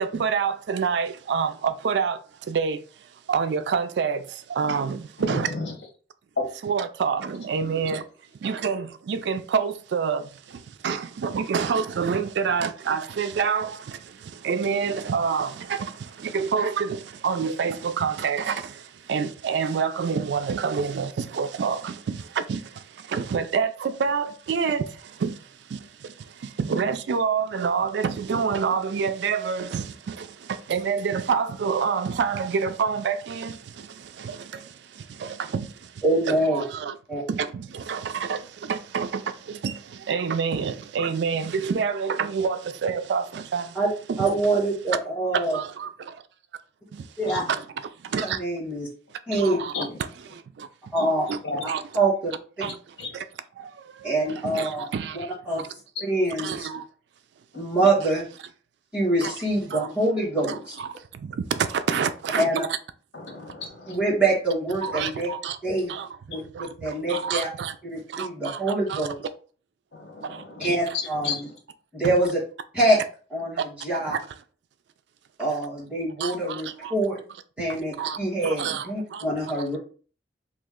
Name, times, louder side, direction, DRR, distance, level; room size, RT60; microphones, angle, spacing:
voice 1, 0.0-2.8 3.3-5.5 6.6-8.0 8.4-37.0 37.3-43.8 44.1-44.6 44.9-45.0 45.3-46.2 46.9-47.1 47.5-48.4 49.3-49.7 50.3-50.7 51.3-51.8 52.6-53.3 53.6-55.7 56.3-56.9 58.0-58.1 59.2-59.4 59.7-59.9 60.5-62.8 64.8-65.6 65.9-66.1 66.5-67.8 68.1-69.1 70.2-70.4 70.9-71.0 72.0-72.2 73.6-73.7 74.1-74.4 76.2-76.9 77.7-79.8, right 6 dB, 75° right, 0.3 m, -28 dB
voice 2, 5.2-5.7 6.4-6.5 47.2-47.4 49.7-50.0 51.0-51.1 51.4-51.7 53.0-53.1 63.1-64.0 69.9-71.5, left 4 dB, 75° left, 1.1 m, -32 dB
voice 3, 36.0-36.6 37.1-37.2 43.7-43.9 44.2-45.6 47.2-47.4 48.4-48.9 49.3-49.6 50.9-51.2 51.9-52.3 54.0-54.9 55.5-55.6 56.0-56.7 57.5-58.2 58.9-60.7 62.4-62.6 63.9-65.3 65.6-65.9 66.3-66.4 66.8-67.5 67.9-69.2 70.6-71.3 71.9-72.4 72.7-73.0 73.3-74.1 75.4-77.2 77.6-79.8, right 2 dB, 5° right, 1.6 m, -24 dB
3.1 x 2.7 x 3.6 m
head